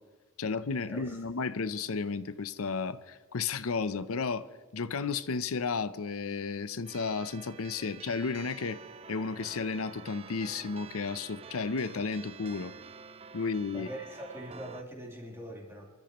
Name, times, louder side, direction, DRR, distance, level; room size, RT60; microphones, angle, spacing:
voice 1, 0.4-4.5 4.7-8.8 9.1-12.7 13.3-13.9, left 4 dB, 85° left, 14 dB, 0.7 m, -33 dB
sound 1, 6.8-14.8, right 6 dB, 30° right, 0.4 m, -48 dB
voice 2, 13.7-15.9, equal, 10° right, -3 dB, 3.3 m, -43 dB
26.0 x 13.5 x 3.0 m, 1.4 s
head